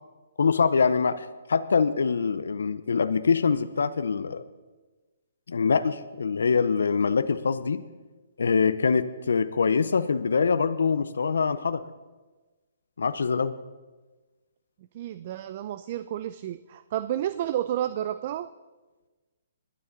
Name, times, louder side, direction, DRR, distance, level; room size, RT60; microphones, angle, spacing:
voice 1, 0.4-4.4 5.5-7.8 8.4-11.8 13.0-13.5, left 5 dB, 75° left, 13 dB, 0.6 m, -24 dB
voice 2, 14.9-18.5, right 11 dB, 45° right, 13 dB, 0.4 m, -31 dB
22.0 x 9.7 x 3.9 m, 1.3 s
hypercardioid pair, 135°, 0 cm